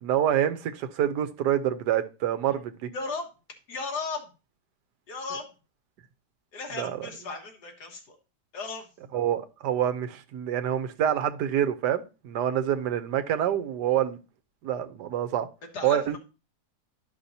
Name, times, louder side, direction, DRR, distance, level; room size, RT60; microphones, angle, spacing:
voice 1, 0.0-2.9 6.8-6.9 9.1-14.2 14.6-15.5 15.8-16.2, right 10 dB, 90° right, 1.3 m, -26 dB
voice 2, 2.9-3.3 3.7-4.3 5.1-5.6 6.5-8.2 8.5-8.9 15.6-16.2, left 4 dB, 80° left, 2.0 m, -36 dB
11.5 x 5.7 x 2.7 m
omnidirectional pair, 1.7 m